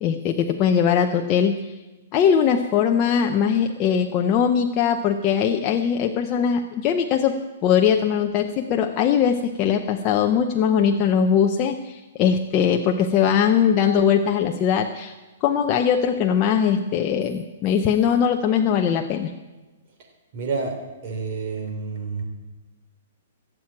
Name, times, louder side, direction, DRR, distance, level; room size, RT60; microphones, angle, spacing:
voice 1, 0.0-1.5 2.1-15.1 15.4-19.3, left 7 dB, 25° left, 4 dB, 0.7 m, -21 dB
voice 2, 20.3-20.7 21.0-22.2, right 4 dB, 40° right, 3 dB, 3.3 m, -28 dB
17.0 x 7.5 x 8.7 m, 1.2 s
hypercardioid pair, 165°, 0 cm